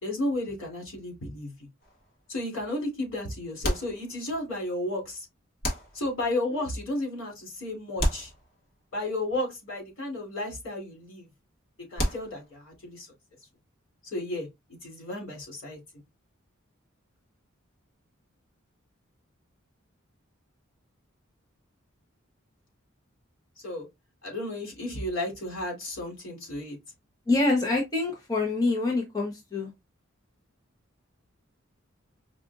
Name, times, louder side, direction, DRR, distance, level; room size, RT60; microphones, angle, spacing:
voice 1, 0.0-1.5 2.3-5.3 5.9-8.3 8.9-11.3 11.9-13.1 14.1-14.5 14.8-15.8 23.6-23.9 24.2-26.8, left 1 dB, 75° left, 2.6 m, -33 dB
sound 1, 1.8-2.4 3.6-4.6 5.6-6.4 8.0-9.0 12.0-12.8, equal, 50° left, 1.5 m, -32 dB
voice 2, 27.3-29.7, left 2 dB, 20° left, 0.9 m, -26 dB
5.0 x 2.5 x 2.4 m
head